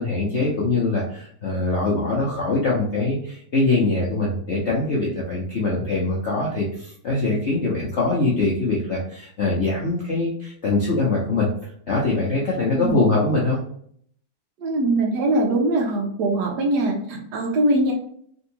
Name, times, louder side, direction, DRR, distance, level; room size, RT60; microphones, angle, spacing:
voice 1, 0.0-11.5 11.9-13.6, left 2 dB, 65° left, -4 dB, 0.7 m, -23 dB
voice 2, 12.7-13.0 14.6-17.9, right 1 dB, 70° right, 1 dB, 1.2 m, -22 dB
3.7 x 2.6 x 2.8 m, 0.64 s
omnidirectional pair, 2.0 m